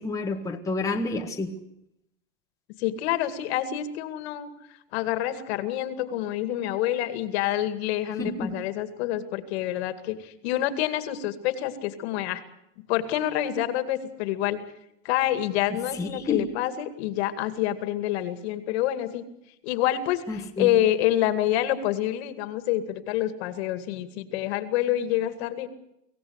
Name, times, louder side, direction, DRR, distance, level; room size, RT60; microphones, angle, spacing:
voice 1, 0.0-1.5 8.2-8.6 15.7-16.5 20.3-20.8, left 3 dB, 10° left, 1 dB, 1.6 m, -30 dB
voice 2, 2.8-4.5 4.9-12.4 12.9-14.6 15.0-19.2 19.6-25.7, left 12 dB, 55° left, 10 dB, 2.3 m, -27 dB
24.5 x 16.5 x 8.1 m, 0.81 s
supercardioid pair, 140°, 38 cm